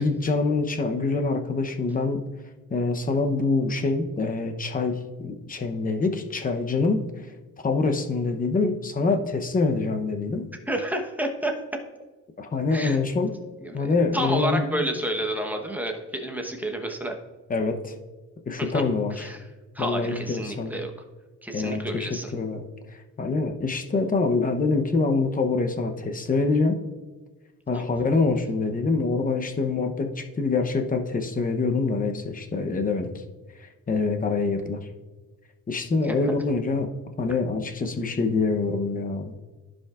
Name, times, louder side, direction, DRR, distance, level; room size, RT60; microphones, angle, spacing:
voice 1, 0.0-2.2 2.7-7.3 7.6-10.5 12.4-13.3 13.7-14.8 17.5-17.9 18.5-19.3 19.8-20.8 21.5-26.8 27.7-33.2 33.6-34.9 35.7-36.9 37.2-39.3, left 3 dB, 25° left, 5 dB, 0.8 m, -25 dB
voice 2, 10.7-11.6 12.7-13.0 13.6-17.2 18.6-18.8 19.2-19.4 19.7-20.9 21.4-22.3 27.7-27.8 36.0-36.2, right 1 dB, 5° right, 2 dB, 1.0 m, -30 dB
15.0 x 5.1 x 2.4 m, 1.3 s
cardioid pair, 125°, 34 cm